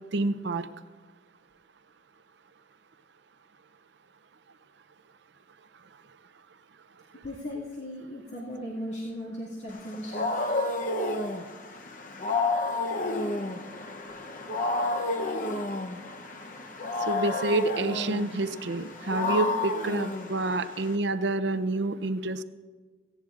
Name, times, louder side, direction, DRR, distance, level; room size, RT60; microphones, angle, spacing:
voice 1, 0.1-0.7 17.1-22.4, right 2 dB, 70° right, 12 dB, 0.6 m, -28 dB
voice 2, 7.2-10.3, left 1 dB, 80° left, -6 dB, 2.1 m, -37 dB
Wild animals, 9.7-21.0, left 2 dB, 45° left, 0.8 m, -31 dB
18.0 x 16.0 x 2.5 m, 1.4 s
head